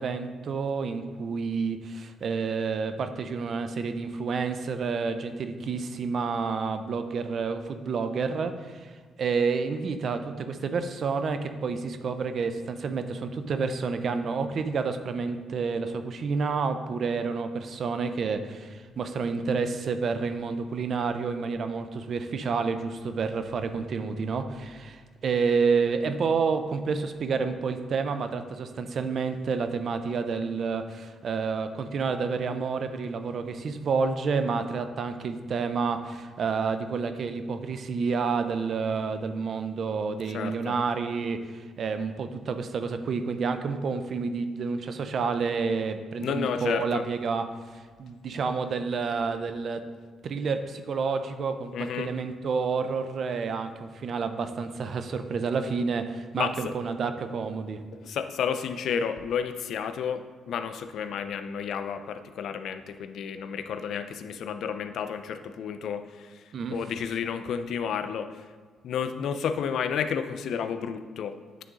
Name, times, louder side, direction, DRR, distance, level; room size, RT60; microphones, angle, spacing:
voice 1, 0.0-8.9 9.2-47.4 47.7-49.8 50.2-57.8 66.5-66.8, right 5 dB, 55° right, 9 dB, 0.5 m, -29 dB
voice 2, 40.3-40.8 46.2-47.1 51.7-52.1 56.4-56.8 57.9-66.4 66.7-68.4 68.8-71.4, left 7 dB, 70° left, 10 dB, 0.4 m, -31 dB
9.0 x 3.9 x 3.7 m, 1.5 s
cardioid pair, 90°, 0 cm